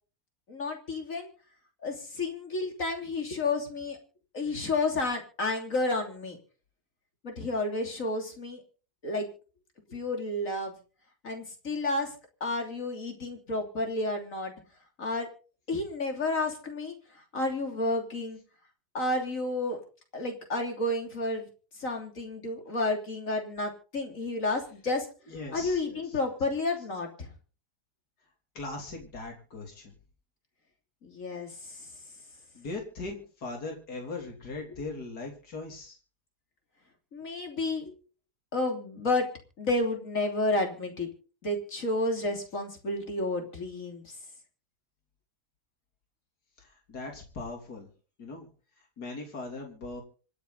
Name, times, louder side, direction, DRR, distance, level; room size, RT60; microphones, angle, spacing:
voice 1, 0.5-1.3 1.8-4.0 4.3-6.4 7.2-8.6 9.0-9.3 9.9-10.8 11.2-12.1 12.4-14.5 15.0-15.3 15.7-18.4 18.9-19.8 20.1-21.5 21.8-25.1 25.5-27.3 31.0-31.9 37.1-37.9 38.5-39.3 39.6-41.1 41.4-44.1, left 2 dB, 55° left, 3 dB, 3.5 m, -31 dB
voice 2, 25.3-26.2 28.6-29.9 32.5-36.0 46.6-47.9 48.2-48.5 49.0-50.0, left 3 dB, 75° left, 1 dB, 3.8 m, -39 dB
26.5 x 9.3 x 4.1 m, 0.39 s
omnidirectional pair, 1.7 m